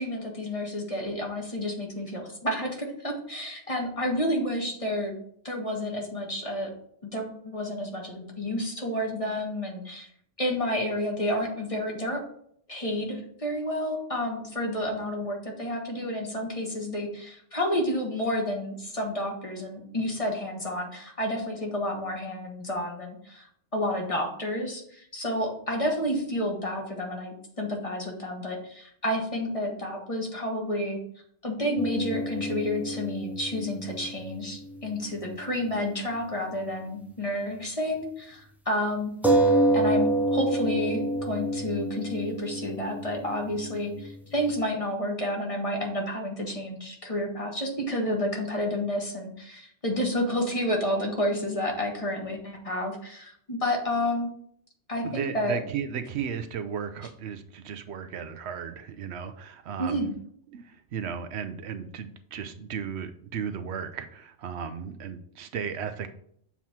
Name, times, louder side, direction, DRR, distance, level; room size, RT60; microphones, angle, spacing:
voice 1, 0.0-5.1 5.4-6.7 7.0-10.1 10.4-12.2 12.7-23.5 23.7-31.0 31.4-39.1 39.7-54.3 54.9-55.6 59.8-60.1, left 1 dB, 30° left, 1 dB, 1.2 m, -30 dB
sound 1, 31.8-35.6 35.9-36.0 39.2-44.5, right 1 dB, ahead, 0.5 m, -28 dB
voice 2, 55.0-60.1 60.5-66.1, right 7 dB, 70° right, 9 dB, 0.8 m, -35 dB
7.2 x 3.0 x 5.6 m, 0.67 s
omnidirectional pair, 1.2 m